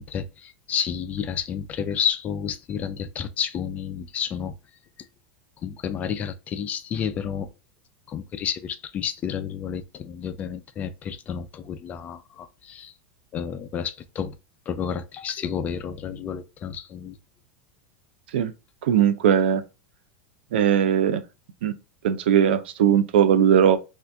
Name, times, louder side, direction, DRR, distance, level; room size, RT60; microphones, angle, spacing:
voice 1, 0.0-4.6 5.6-7.5 8.1-12.9 13.3-14.4 14.7-17.2, left 8 dB, 25° left, 0.3 m, -30 dB
voice 2, 18.8-19.6 20.5-21.2 21.6-21.7 22.0-23.8, right 9 dB, 85° right, 0.4 m, -19 dB
2.8 x 2.4 x 3.3 m
supercardioid pair, 140°, 6 cm